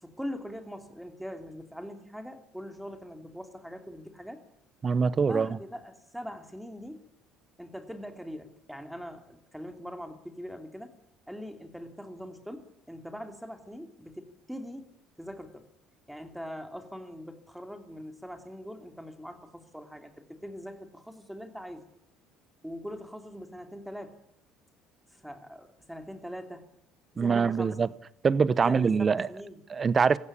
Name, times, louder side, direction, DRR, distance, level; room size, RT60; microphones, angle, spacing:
voice 1, 0.0-4.4 5.3-7.1 7.6-10.9 11.3-14.9 15.2-15.7 16.1-21.8 22.6-24.2 25.1-26.7 27.1-27.8 28.6-29.6, equal, ahead, 3.1 m, -42 dB
voice 2, 4.8-5.6 27.2-27.9 28.2-29.3 29.7-30.2, right 5 dB, 35° right, 0.9 m, -24 dB
19.5 x 15.5 x 9.9 m
supercardioid pair, 80°, 0 cm